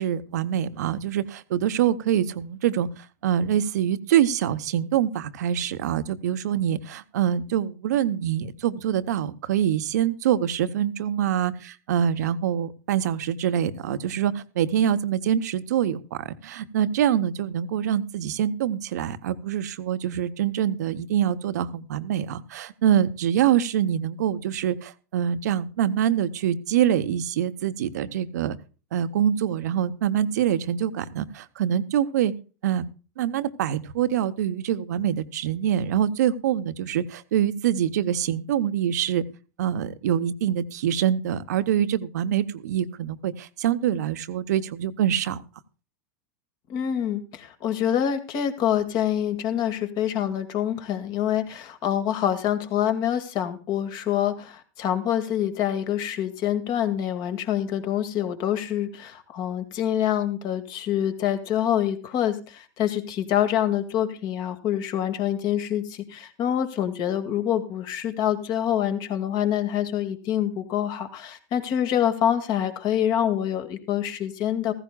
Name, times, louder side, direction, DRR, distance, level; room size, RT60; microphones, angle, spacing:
voice 1, 0.0-28.6 28.9-32.3 32.6-32.9 33.2-39.2 39.6-45.4, right 10 dB, 75° right, 13 dB, 0.8 m, -25 dB
voice 2, 46.7-74.7, left 10 dB, 50° left, 9 dB, 2.0 m, -26 dB
15.0 x 15.0 x 2.3 m, 0.34 s
hypercardioid pair, 100°, 9 cm